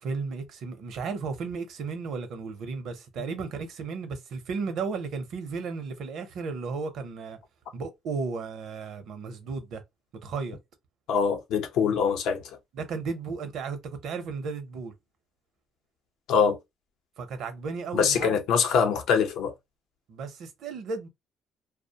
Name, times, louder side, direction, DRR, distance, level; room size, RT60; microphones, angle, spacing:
voice 1, 0.0-7.4 7.7-9.8 10.2-10.6 12.7-14.9 17.2-18.4 20.1-21.1, right 4 dB, 65° right, 0.6 m, -34 dB
voice 2, 11.1-12.4 16.3-16.6 17.9-19.5, left 6 dB, 80° left, 0.6 m, -23 dB
2.4 x 2.1 x 2.7 m
cardioid pair, 135°, 0 cm